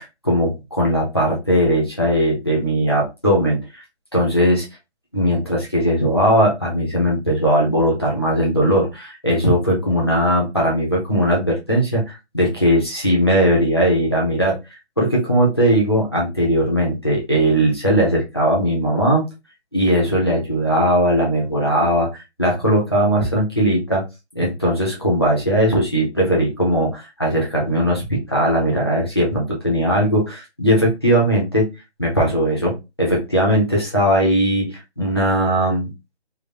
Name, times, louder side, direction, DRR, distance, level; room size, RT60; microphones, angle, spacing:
voice 1, 0.0-3.8 4.1-4.7 5.1-14.6 15.0-19.2 19.7-24.0 24.3-31.7 32.0-35.9, equal, 20° left, -4 dB, 0.9 m, -19 dB
3.3 x 2.2 x 4.2 m, 0.24 s
figure-of-eight pair, 180°, 34 cm